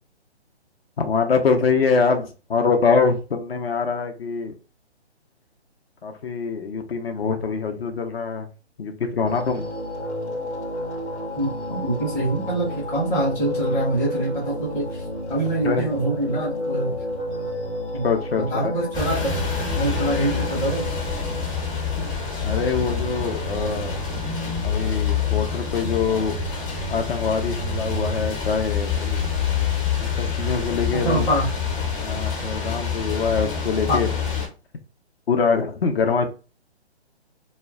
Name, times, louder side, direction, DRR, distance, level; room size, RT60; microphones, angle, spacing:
voice 1, 1.0-4.5 6.0-8.5 8.8-9.7 15.6-15.9 18.0-18.7 22.4-24.0 24.6-26.3 26.9-29.3 30.0-31.3 32.0-34.1 35.3-36.3, left 5 dB, 60° left, 0.7 m, -24 dB
sound 1, 9.2-21.5, left 1 dB, 85° left, 1.0 m, -31 dB
voice 2, 11.4-15.0 15.3-17.0 17.9-18.1 18.4-19.4 19.7-20.9 31.0-31.5 33.9-34.0, right 1 dB, 5° left, 0.5 m, -24 dB
sound 2, 18.9-34.5, left 6 dB, 30° left, 0.8 m, -26 dB
2.2 x 2.1 x 3.5 m
figure-of-eight pair, 140°, 33 cm